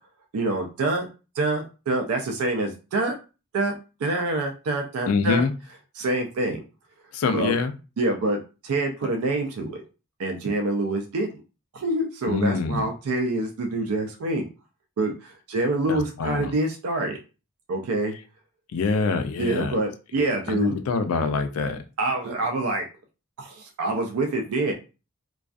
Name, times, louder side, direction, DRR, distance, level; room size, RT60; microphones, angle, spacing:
voice 1, 0.3-1.1 1.4-3.1 3.5-3.8 4.0-5.5 5.9-6.6 7.3-7.5 8.0-8.4 8.6-9.8 10.2-11.3 11.7-14.5 15.0-17.2 17.7-18.1 19.4-20.8 22.0-22.9 23.4-24.7, right 2 dB, 75° right, 3 dB, 0.4 m, -26 dB
voice 2, 5.1-5.5 7.1-7.7 12.3-12.8 15.9-16.5 18.7-19.8 20.5-21.8, left 4 dB, 70° left, 9 dB, 0.4 m, -25 dB
2.3 x 2.3 x 2.4 m, 0.32 s
head